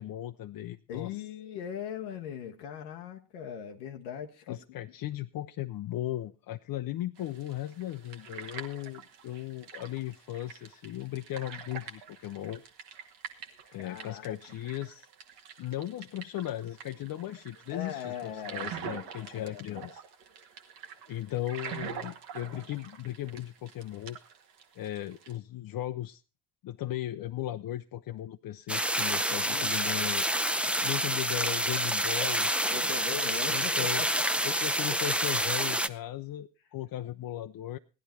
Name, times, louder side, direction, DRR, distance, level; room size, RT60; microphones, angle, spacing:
voice 1, 0.0-1.2 4.5-12.6 13.7-15.1 15.6-20.0 21.1-24.2 24.8-26.2 26.6-30.3 30.8-32.5 33.1-34.0 34.4-37.8, left 13 dB, 55° left, 8 dB, 0.6 m, -37 dB
voice 2, 0.9-4.6 13.8-14.4 17.7-19.8 29.4-29.7 30.6-30.9 32.6-34.3, left 8 dB, 85° left, 3 dB, 0.9 m, -40 dB
sound 1, 7.2-25.4, right 7 dB, 75° right, 1.3 m, -45 dB
sound 2, 28.7-35.9, right 1 dB, 5° right, 0.6 m, -28 dB
15.5 x 11.0 x 4.2 m, 0.33 s
hypercardioid pair, 45°, 42 cm